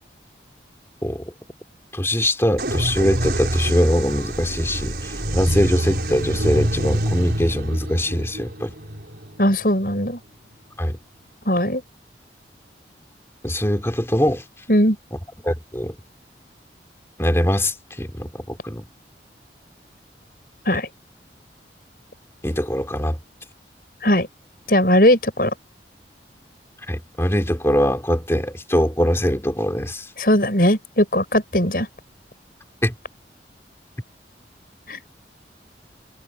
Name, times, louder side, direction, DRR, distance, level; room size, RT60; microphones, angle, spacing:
voice 1, 1.9-8.7 10.8-11.0 13.4-14.4 15.4-16.0 17.2-18.8 22.4-23.2 26.9-30.1 32.8-32.9, equal, 15° left, 2.8 m, -22 dB
sound 1, 2.6-10.1, right 1 dB, 65° right, 4.9 m, -26 dB
voice 2, 9.4-10.2 11.5-11.8 14.7-15.0 20.6-20.9 24.0-24.3 24.7-25.5 30.2-31.9 34.9-35.0, left 1 dB, 55° left, 7.6 m, -18 dB
head